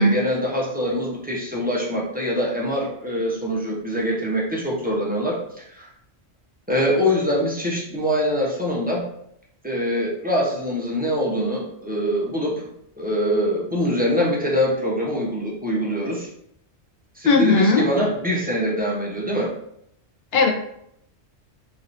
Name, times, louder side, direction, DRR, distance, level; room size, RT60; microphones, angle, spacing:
voice 1, 0.0-5.4 5.8-5.9 6.7-9.1 9.6-12.6 13.0-16.3 17.2-19.5, equal, 10° right, -5 dB, 0.5 m, -24 dB
voice 2, 17.3-17.9 20.3-20.5, left 2 dB, 65° left, 2 dB, 0.8 m, -17 dB
3.1 x 2.5 x 2.8 m, 0.73 s
omnidirectional pair, 1.2 m